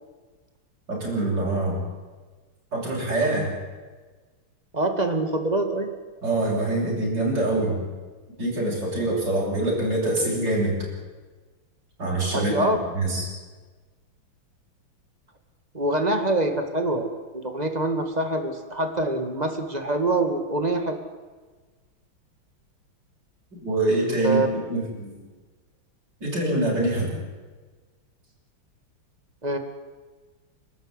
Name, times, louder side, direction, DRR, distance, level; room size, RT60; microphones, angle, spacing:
voice 1, 0.9-1.8 2.7-3.5 6.2-7.8 8.4-10.9 12.0-12.7 12.9-13.2 23.6-24.4 24.7-25.1 26.2-27.1, right 2 dB, 50° right, -4 dB, 8.7 m, -24 dB
voice 2, 4.7-5.9 12.3-12.8 15.7-17.1 17.3-21.0 24.2-24.5 29.4-29.6, right 2 dB, 20° right, 6 dB, 2.4 m, -25 dB
29.5 x 13.0 x 9.9 m, 1.3 s
omnidirectional pair, 2.3 m